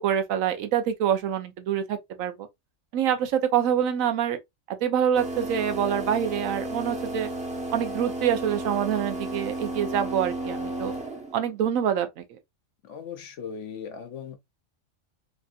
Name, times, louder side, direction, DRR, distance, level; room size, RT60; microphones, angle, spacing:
voice 1, 0.0-2.3 2.9-4.4 4.7-7.3 7.7-10.9 11.3-12.2, right 9 dB, 90° right, 1.1 m, -26 dB
sound 1, 5.1-11.5, right 1 dB, 5° right, 0.6 m, -33 dB
voice 2, 12.9-14.4, left 7 dB, 70° left, 1.0 m, -38 dB
3.4 x 2.6 x 2.3 m
omnidirectional pair, 1.4 m